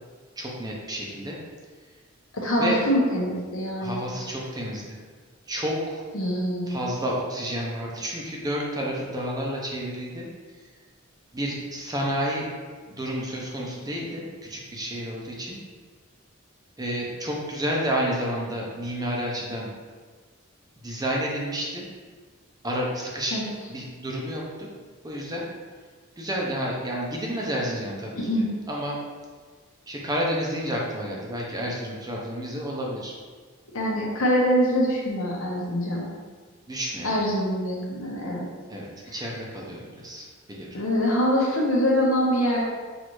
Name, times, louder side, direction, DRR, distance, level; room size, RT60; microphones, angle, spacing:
voice 1, 0.4-1.4 2.6-2.8 3.8-5.0 5.5-6.0 6.7-10.3 10.6-10.7 11.3-12.5 12.9-15.6 16.8-19.7 20.8-21.9 22.6-23.4 23.7-24.7 25.0-25.5 26.2-28.2 28.7-29.0 29.9-33.2 36.7-37.2 38.7-40.8, equal, 20° right, -3 dB, 0.7 m, -30 dB
voice 2, 2.3-4.0 6.1-6.8 23.3-23.5 28.3-28.5 33.7-36.0 37.0-38.5 40.7-42.6, equal, 75° left, -4 dB, 1.1 m, -24 dB
6.1 x 2.6 x 3.1 m, 1.5 s
head